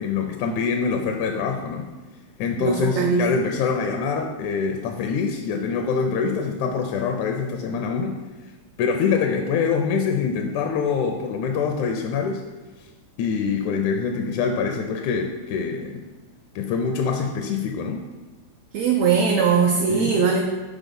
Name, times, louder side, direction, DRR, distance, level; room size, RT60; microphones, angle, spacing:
voice 1, 0.0-1.9 2.4-8.2 8.8-12.4 13.2-16.1 16.6-18.0 19.9-20.2, left 5 dB, 80° left, 4 dB, 1.9 m, -25 dB
voice 2, 2.6-3.2 18.7-20.4, right 6 dB, 75° right, 0 dB, 1.6 m, -20 dB
6.0 x 4.0 x 5.2 m, 1.3 s
omnidirectional pair, 3.4 m